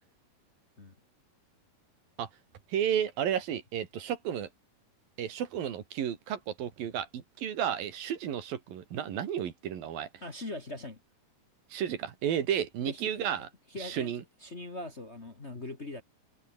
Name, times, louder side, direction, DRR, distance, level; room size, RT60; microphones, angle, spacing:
voice 1, 2.7-4.5 5.2-10.1 11.7-13.5 13.8-14.2, right 9 dB, 85° right, 4.1 m, -32 dB
voice 2, 10.2-11.0 12.8-13.3 13.7-14.1 14.4-16.0, left 2 dB, 25° left, 1.6 m, -41 dB
omnidirectional pair, 4.0 m